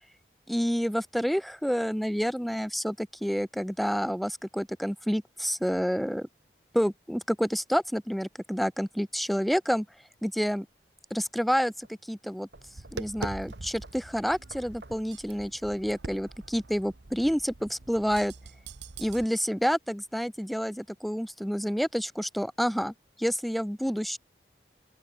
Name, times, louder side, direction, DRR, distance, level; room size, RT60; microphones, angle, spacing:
voice 1, 0.5-6.3 6.7-9.8 10.2-10.7 11.1-12.5 12.9-18.3 19.0-22.9 23.2-24.2, equal, ahead, 0.4 m, -29 dB
sound 1, 10.8-16.0, right 2 dB, 65° right, 6.5 m, -57 dB
Tap, 12.6-19.2, right 3 dB, 80° right, 1.2 m, -43 dB
open air
head